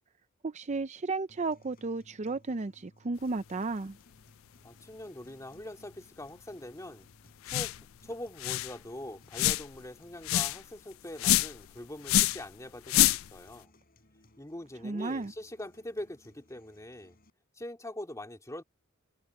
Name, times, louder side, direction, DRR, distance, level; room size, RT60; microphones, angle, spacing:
voice 1, 0.4-4.0 14.8-15.3, right 3 dB, 35° right, 0.5 m, -33 dB
sound 1, 1.3-17.3, left 1 dB, 45° left, 4.8 m, -62 dB
voice 2, 4.6-7.1 7.4-7.8 8.0-13.7 14.4-17.2 17.5-18.6, left 1 dB, 15° left, 2.7 m, -43 dB
sound 2, 7.5-7.8 8.1-8.2 8.4-8.7 9.3-9.8 10.2-10.6 11.2-11.6 12.0-12.4 12.9-13.4, left 14 dB, 70° left, 0.3 m, -26 dB
head